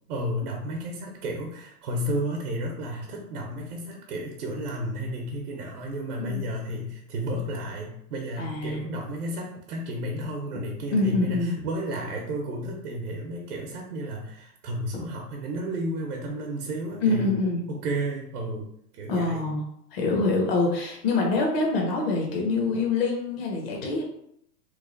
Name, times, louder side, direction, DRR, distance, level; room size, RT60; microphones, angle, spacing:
voice 1, 0.1-17.3 17.7-19.4, right 1 dB, 65° right, 1 dB, 0.8 m, -32 dB
voice 2, 6.2-6.5 8.4-9.0 10.9-11.7 17.0-17.7 19.1-19.6 19.9-24.0, left 3 dB, 40° left, -1 dB, 0.6 m, -25 dB
3.1 x 2.2 x 3.7 m, 0.74 s
hypercardioid pair, 160°, 47 cm